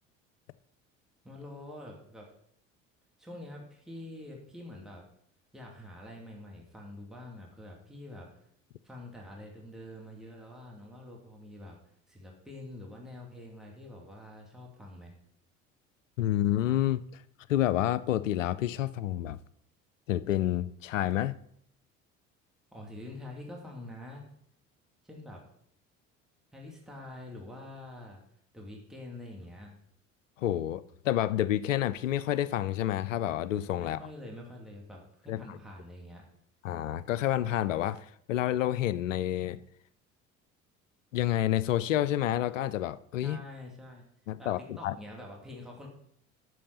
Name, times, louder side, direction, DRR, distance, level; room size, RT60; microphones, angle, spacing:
voice 1, 1.2-2.3 3.2-5.0 5.5-8.5 8.8-11.7 12.1-15.1 22.7-24.3 25.0-25.4 26.5-28.2 28.5-29.7 33.8-36.2 43.2-44.0 44.4-45.9, left 1 dB, ahead, 2.8 m, -46 dB
voice 2, 16.2-17.2 17.5-19.4 20.1-21.4 30.4-34.0 35.3-35.6 36.6-39.6 41.1-43.4 44.3-45.0, left 12 dB, 75° left, 0.5 m, -29 dB
8.5 x 6.3 x 6.9 m
figure-of-eight pair, 60°, 39 cm